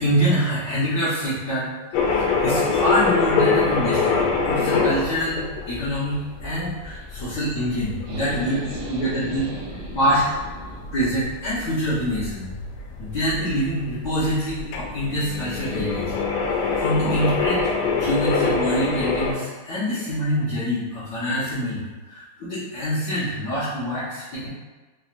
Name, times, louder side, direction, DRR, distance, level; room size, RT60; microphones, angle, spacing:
voice 1, 0.0-1.7 2.2-8.6 8.9-9.5 9.9-10.2 10.9-12.5 13.0-16.2 16.8-24.5, equal, 60° left, -12 dB, 1.4 m, -25 dB
sound 1, 1.9-19.3, left 4 dB, 90° left, 1.5 m, -25 dB
voice 2, 8.0-10.9, right 1 dB, 80° right, -3 dB, 1.6 m, -37 dB
4.1 x 2.8 x 2.5 m, 1.3 s
omnidirectional pair, 2.3 m